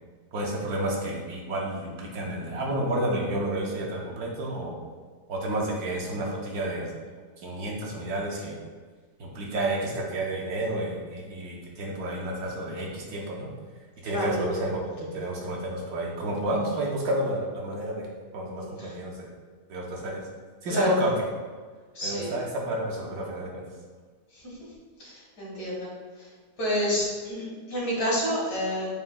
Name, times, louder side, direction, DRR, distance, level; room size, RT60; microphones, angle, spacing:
voice 1, 0.3-4.8 5.3-6.9 7.4-8.6 9.2-13.5 14.0-14.8 15.1-18.1 18.3-19.3 19.7-20.2 20.6-21.1 22.0-23.6, right 1 dB, 70° right, -2 dB, 1.1 m, -30 dB
voice 2, 18.6-18.9 20.7-21.0 21.9-22.3 24.3-24.6 25.0-25.9 26.2-26.3 26.6-28.9, equal, 90° left, -5 dB, 2.1 m, -29 dB
6.9 x 2.7 x 2.2 m, 1.5 s
omnidirectional pair, 1.7 m